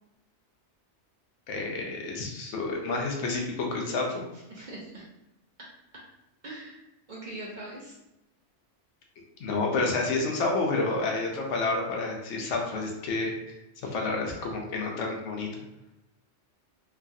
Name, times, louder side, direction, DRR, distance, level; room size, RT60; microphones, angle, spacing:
voice 1, 1.5-4.2 9.4-13.6 13.9-15.5, left 3 dB, 75° left, 1 dB, 0.9 m, -29 dB
voice 2, 4.3-5.0 5.9-6.1 6.4-6.8 7.1-8.0 13.8-13.9, right 1 dB, 50° right, -5 dB, 0.6 m, -42 dB
3.2 x 2.3 x 2.6 m, 0.92 s
omnidirectional pair, 1.3 m